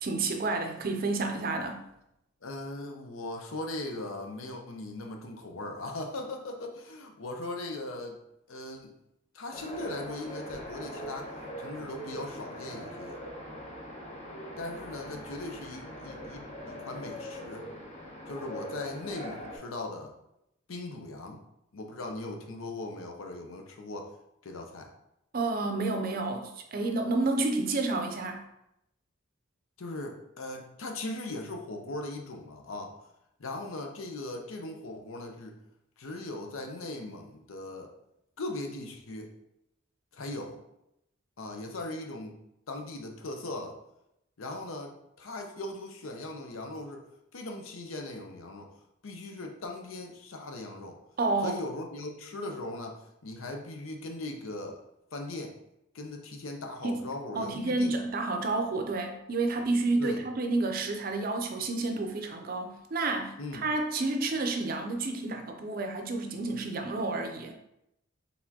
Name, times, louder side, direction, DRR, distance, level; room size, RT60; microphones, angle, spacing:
voice 1, 0.0-1.8 25.3-28.4 51.2-51.6 56.8-57.1 57.4-67.5, right 3 dB, 45° right, 5 dB, 0.5 m, -30 dB
voice 2, 2.4-8.2 8.5-8.9 9.3-11.3 11.6-13.2 14.6-17.7 18.3-20.1 20.7-21.4 21.7-24.1 24.4-24.9 29.8-32.9 33.4-35.6 36.0-37.9 38.4-39.3 40.1-40.6 41.4-42.4 42.7-43.7 44.4-44.9 45.2-47.0 47.3-48.7 49.0-51.0 51.4-54.8 55.1-55.5 55.9-58.0 60.0-60.2 63.4-63.7, left 2 dB, 80° left, 3 dB, 0.7 m, -39 dB
sound 1, 9.5-19.6, equal, 30° left, 0.8 m, -42 dB
4.2 x 3.4 x 2.8 m, 0.83 s
head